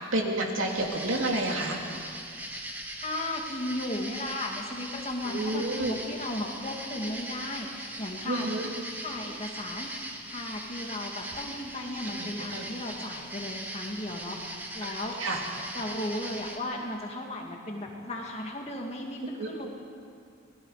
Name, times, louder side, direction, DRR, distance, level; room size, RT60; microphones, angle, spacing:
voice 1, 0.0-1.8 5.2-5.9 8.2-8.7 12.1-12.3 12.5-12.6 15.2-15.4 19.4-19.5, right 2 dB, 70° right, 0 dB, 2.9 m, -29 dB
sound 1, 0.7-16.6, right 1 dB, 10° right, 1.4 m, -40 dB
voice 2, 3.0-8.5 9.0-14.4 14.7-15.1 15.7-19.7, left 1 dB, 30° left, 0 dB, 2.4 m, -35 dB
27.5 x 19.5 x 5.1 m, 2.3 s
head